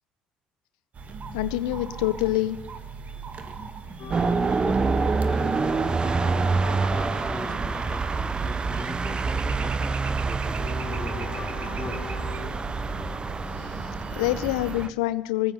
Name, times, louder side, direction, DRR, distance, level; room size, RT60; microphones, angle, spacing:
sound 1, 0.9-14.9, right 4 dB, 45° right, 1.7 m, -39 dB
voice 1, 1.3-2.6 13.5-15.5, left 16 dB, 85° left, 14 dB, 0.4 m, -26 dB
sound 2, 4.0-14.9, left 8 dB, 50° left, 0.9 m, -42 dB
sound 3, 4.1-14.9, right 4 dB, 25° right, 0.4 m, -27 dB
voice 2, 4.2-12.1, left 2 dB, 15° left, 4 dB, 2.5 m, -39 dB
20.5 x 9.4 x 6.9 m, 1.2 s
hypercardioid pair, 70°, 3 cm